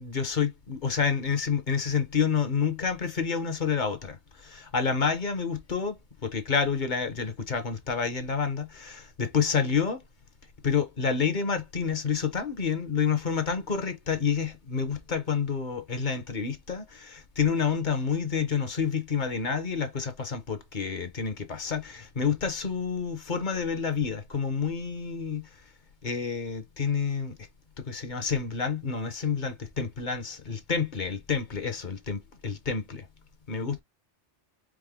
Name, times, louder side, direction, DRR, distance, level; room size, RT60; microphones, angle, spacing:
voice 1, 0.0-10.0 10.6-25.5 26.0-27.4 27.8-33.1 33.5-33.8, left 6 dB, 45° left, 0.8 m, -29 dB
4.8 x 2.1 x 3.5 m
omnidirectional pair, 1.2 m